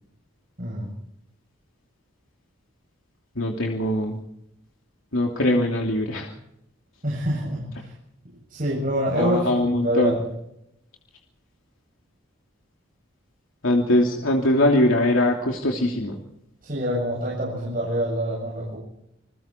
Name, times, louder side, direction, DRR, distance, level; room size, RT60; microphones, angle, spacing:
voice 1, 0.6-0.9 7.0-7.9 8.5-10.3 16.6-18.8, equal, 45° right, -4 dB, 7.8 m, -26 dB
voice 2, 3.3-4.2 5.1-6.3 9.1-10.2 13.6-16.2, left 1 dB, 80° left, 1 dB, 3.0 m, -21 dB
28.0 x 21.0 x 4.5 m, 0.80 s
head